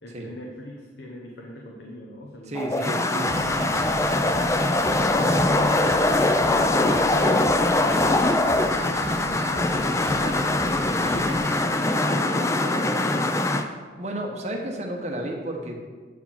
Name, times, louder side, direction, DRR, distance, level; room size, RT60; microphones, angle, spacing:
voice 1, 0.0-2.7 3.8-13.3, left 1 dB, 75° left, -1 dB, 1.0 m, -40 dB
voice 2, 2.4-3.8 12.1-12.2 14.0-15.8, right 1 dB, 40° right, 2 dB, 1.0 m, -32 dB
sound 1, 2.6-13.6, left 2 dB, 15° left, 0.4 m, -22 dB
Drum kit, 3.2-11.6, right 3 dB, 75° right, 0.6 m, -39 dB
8.3 x 4.6 x 5.7 m, 1.5 s
head